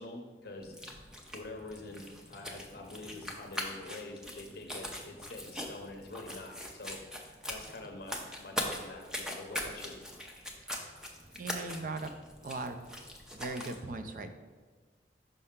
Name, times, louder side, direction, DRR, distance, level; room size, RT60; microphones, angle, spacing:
voice 1, 0.0-9.9, left 2 dB, 60° left, 3 dB, 0.6 m, -46 dB
sound 1, 0.6-13.8, left 1 dB, 5° right, 0.6 m, -42 dB
voice 2, 11.3-12.1 12.4-12.9 13.3-14.3, right 3 dB, 50° right, 8 dB, 0.5 m, -39 dB
5.5 x 5.4 x 3.6 m, 1.4 s
head